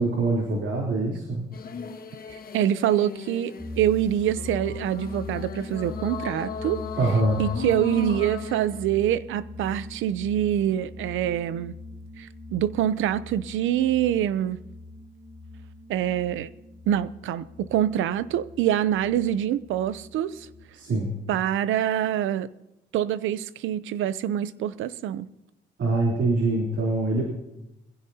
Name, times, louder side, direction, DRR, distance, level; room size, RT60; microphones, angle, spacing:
voice 1, 0.0-1.5 7.0-7.4 20.7-21.1 25.8-27.2, right 2 dB, 65° right, 3.4 m, -24 dB
sound 1, 1.5-8.9, left 6 dB, 50° left, 1.3 m, -37 dB
voice 2, 2.3-6.8 7.4-11.8 12.2-14.6 15.9-16.5 16.9-20.5 21.3-22.5 22.9-25.3, right 11 dB, 85° right, 0.7 m, -25 dB
sound 2, 3.6-20.7, left 2 dB, 5° left, 2.2 m, -41 dB
21.5 x 15.5 x 2.8 m
cardioid pair, 90°, 20 cm